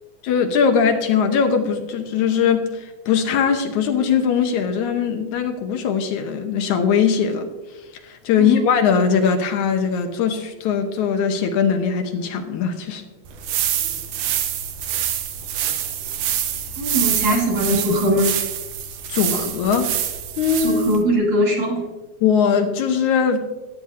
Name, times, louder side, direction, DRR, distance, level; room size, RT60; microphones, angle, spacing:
voice 1, 0.2-7.5 8.0-13.0 19.1-19.9 20.4-20.8 22.2-23.4, left 6 dB, 80° left, 5 dB, 2.3 m, -20 dB
sound 1, 13.3-21.0, right 10 dB, 85° right, 2.4 m, -26 dB
voice 2, 16.8-18.3 20.6-21.8, equal, 60° right, -3 dB, 3.5 m, -20 dB
14.0 x 9.8 x 2.7 m, 1.2 s
omnidirectional pair, 3.5 m